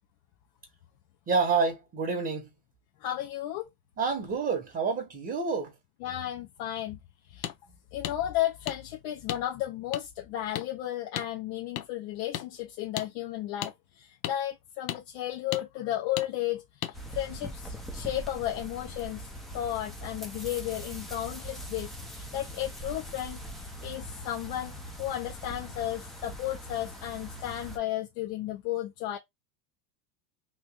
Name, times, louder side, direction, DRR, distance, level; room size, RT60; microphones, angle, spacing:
voice 1, 1.3-2.5 4.0-5.7, right 4 dB, 20° right, 1.0 m, -28 dB
voice 2, 3.0-3.7 6.0-7.0 7.3-7.5 7.9-19.3 19.5-23.4 23.8-29.2, left 13 dB, 50° left, 0.8 m, -34 dB
sound 1, 7.4-7.6 8.0-8.2 8.7-8.8 9.3-9.4 9.9-10.0 10.5-10.7 11.2-11.3 11.8-11.9 12.3-12.5 13.0-13.1 13.6-13.7 14.2-14.4 14.9-15.0 15.5-15.6 16.2-16.3 16.8-16.9, left 12 dB, 85° left, 0.8 m, -34 dB
sound 2, 16.9-27.8, equal, ahead, 0.6 m, -42 dB
3.1 x 2.6 x 3.5 m
supercardioid pair, 135°, 49 cm